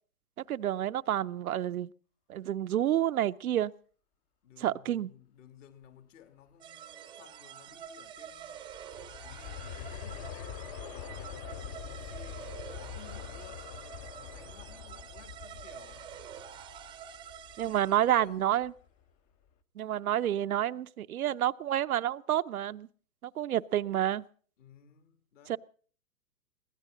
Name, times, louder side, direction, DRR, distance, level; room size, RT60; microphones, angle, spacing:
voice 1, 0.5-1.9 2.3-3.7 4.6-5.1 17.6-18.7 19.8-22.9 23.2-24.2 25.5-25.6, right 11 dB, 70° right, 0.7 m, -29 dB
voice 2, 4.4-8.7 9.2-13.7 14.2-16.1 17.6-17.7 18.2-18.7 24.6-25.6, left 9 dB, 55° left, 2.8 m, -56 dB
sound 1, 6.6-18.3, right 9 dB, 10° right, 0.7 m, -47 dB
Aircraft, 8.2-19.0 19.5-19.6, left 7 dB, 25° left, 0.8 m, -45 dB
22.5 x 16.5 x 3.8 m
hypercardioid pair, 130°, 45 cm